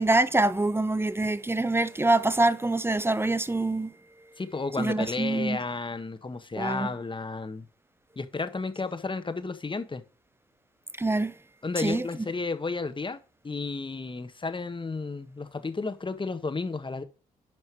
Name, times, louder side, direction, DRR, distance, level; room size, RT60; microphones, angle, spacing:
voice 1, 0.0-3.9 4.8-5.6 6.6-6.9 11.0-11.3 11.8-12.1, right 2 dB, 15° right, 0.9 m, -25 dB
voice 2, 4.4-7.7 8.2-10.0 11.6-17.0, left 3 dB, 35° left, 1.7 m, -32 dB
11.0 x 5.3 x 4.9 m
supercardioid pair, 55°, 15 cm